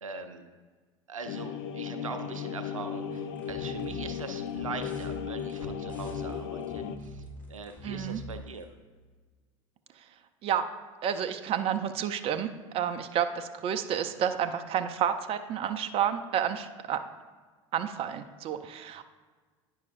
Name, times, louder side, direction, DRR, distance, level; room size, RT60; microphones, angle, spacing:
voice 1, 0.0-0.5 1.1-8.7, right 4 dB, 90° right, 7 dB, 0.5 m, -41 dB
sound 1, 1.3-7.0, left 8 dB, 60° left, 0.4 m, -36 dB
sound 2, 3.1-8.6, equal, 10° left, 1.9 m, -44 dB
voice 2, 7.8-8.2 10.4-10.7 11.0-12.5 12.7-17.0 17.7-19.0, right 9 dB, 35° right, 8 dB, 0.4 m, -30 dB
9.4 x 5.4 x 2.5 m, 1.4 s
figure-of-eight pair, 75°, 17 cm